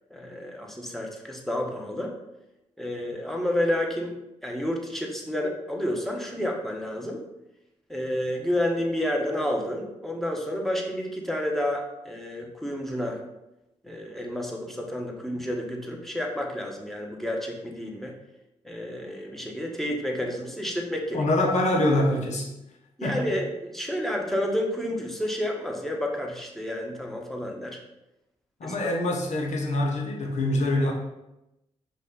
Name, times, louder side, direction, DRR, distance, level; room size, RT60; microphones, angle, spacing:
voice 1, 0.1-2.1 2.8-4.1 4.4-7.2 7.9-13.2 13.8-18.1 18.6-21.3 23.0-27.8 28.6-28.9, left 1 dB, ahead, 0 dB, 1.2 m, -30 dB
voice 2, 21.1-22.5 23.0-23.4 28.6-30.9, left 1 dB, 65° left, 1 dB, 1.0 m, -25 dB
5.3 x 2.6 x 3.9 m, 0.90 s
supercardioid pair, 45°, 13 cm